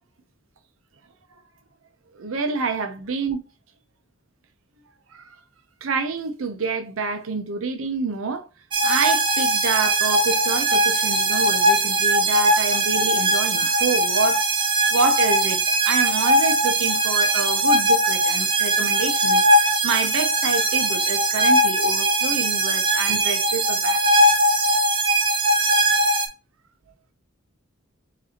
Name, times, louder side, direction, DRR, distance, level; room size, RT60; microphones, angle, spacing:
voice 1, 2.1-3.4 5.1-5.4 5.8-8.5 8.8-14.4 14.9-24.3, right 4 dB, 75° right, 0.6 m, -28 dB
sound 1, 8.7-26.3, right 1 dB, 25° right, 0.6 m, -20 dB
4.9 x 2.6 x 2.8 m
head